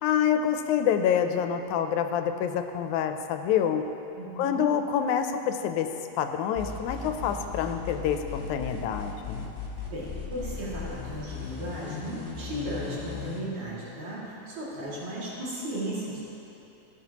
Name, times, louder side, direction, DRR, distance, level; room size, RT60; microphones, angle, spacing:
voice 1, 0.0-3.8 4.4-5.9 6.2-9.5, left 8 dB, 85° left, 7 dB, 1.9 m, -27 dB
voice 2, 4.2-4.6 9.9-16.2, right 1 dB, 75° right, -8 dB, 3.5 m, -35 dB
sound 1, 6.5-13.4, left 5 dB, 40° left, 1.0 m, -37 dB
15.5 x 7.9 x 2.9 m, 2.9 s
omnidirectional pair, 3.4 m